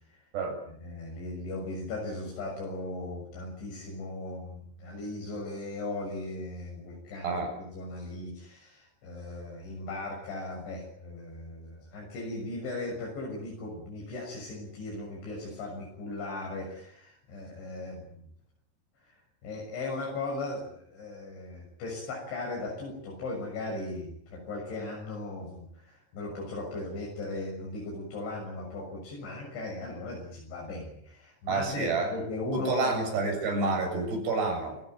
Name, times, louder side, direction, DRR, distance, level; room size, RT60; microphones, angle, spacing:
voice 1, 0.8-18.3 19.1-19.2 19.4-33.1, left 2 dB, 80° left, -2 dB, 9.1 m, -37 dB
voice 2, 31.5-32.1 32.5-34.8, right 3 dB, 65° right, 4 dB, 9.4 m, -29 dB
29.0 x 18.0 x 9.2 m, 0.68 s
omnidirectional pair, 5.2 m